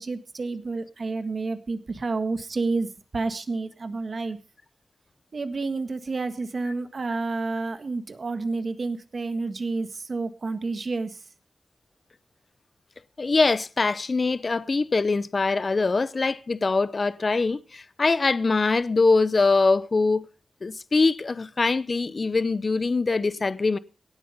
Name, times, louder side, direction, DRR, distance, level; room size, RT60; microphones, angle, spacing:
voice 1, 0.0-2.9 3.1-4.4 5.3-11.2, right 3 dB, 50° right, 1.6 m, -29 dB
voice 2, 13.2-20.3 20.6-23.8, left 3 dB, 45° left, 0.6 m, -23 dB
17.5 x 8.1 x 5.3 m
wide cardioid pair, 105°, 0 cm